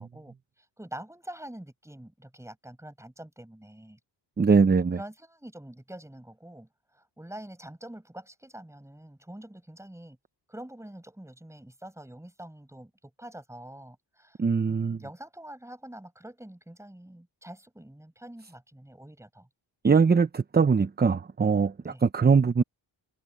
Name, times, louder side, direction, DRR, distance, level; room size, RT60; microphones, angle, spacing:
voice 1, 0.0-4.0 4.9-6.7 6.9-10.2 10.5-14.4 14.7-19.5 21.9-22.0, right 1 dB, 5° right, 6.2 m, -45 dB
voice 2, 4.4-5.0 14.4-15.0 19.8-22.6, right 5 dB, 20° right, 0.7 m, -22 dB
cardioid pair, 100°, 45 cm